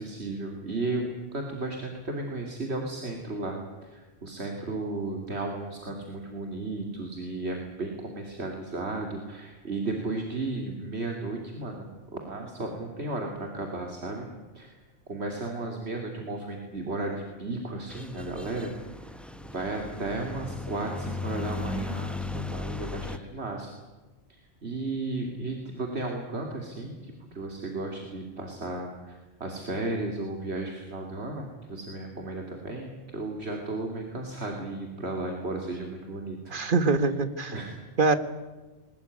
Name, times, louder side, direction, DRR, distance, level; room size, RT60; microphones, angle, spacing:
voice 1, 0.0-14.3 14.5-14.8 15.1-19.1 19.5-23.7 24.3-36.5 37.5-37.8, right 2 dB, 70° right, 2 dB, 3.0 m, -34 dB
sound 1, 17.9-23.2, left 3 dB, ahead, 1.1 m, -36 dB
voice 2, 36.5-37.5 38.0-38.2, right 3 dB, 50° right, 11 dB, 1.6 m, -23 dB
21.5 x 20.5 x 9.8 m, 1.3 s
omnidirectional pair, 1.1 m